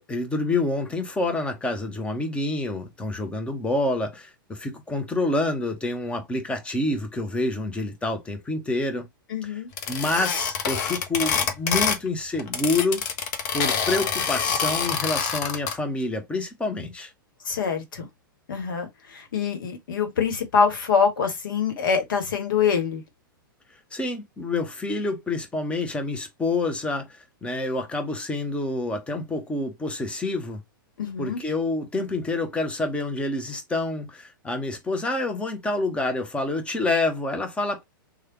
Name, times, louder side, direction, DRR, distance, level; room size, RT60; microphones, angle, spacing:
voice 1, 0.0-9.1 9.9-13.0 13.5-17.1 23.9-30.6 31.2-37.8, left 2 dB, 10° left, 0.8 m, -27 dB
voice 2, 9.3-9.7 17.4-18.1 18.5-23.0 31.0-31.4, left 6 dB, 65° left, 1.2 m, -25 dB
sound 1, 9.8-12.1 12.4-15.7, left 6 dB, 45° left, 0.8 m, -26 dB
3.2 x 2.3 x 3.1 m
hypercardioid pair, 110°, 12 cm